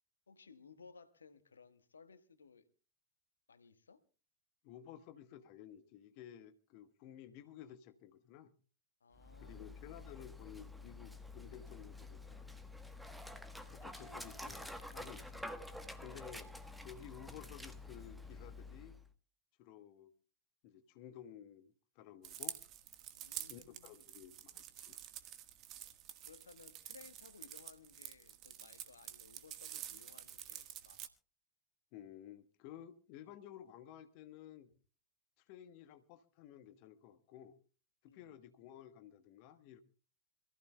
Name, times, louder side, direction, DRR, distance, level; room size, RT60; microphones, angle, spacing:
voice 1, 0.3-2.7 3.5-4.0 9.0-9.9 13.9-14.3 23.1-24.1 26.2-31.1 38.1-38.3, left 5 dB, 70° left, 1.4 m, -60 dB
voice 2, 4.6-8.5 9.4-12.6 13.7-14.7 14.9-15.5 16.0-16.5 16.8-18.9 19.6-20.1 20.6-22.6 23.5-25.0 31.9-34.7 35.4-37.5 38.0-39.8, left 10 dB, 45° left, 1.2 m, -54 dB
Dog, 9.1-19.1, left 2 dB, ahead, 1.1 m, -49 dB
sound 1, 22.2-31.1, right 12 dB, 35° right, 1.4 m, -49 dB
26.5 x 15.0 x 2.2 m
figure-of-eight pair, 90°, 0 cm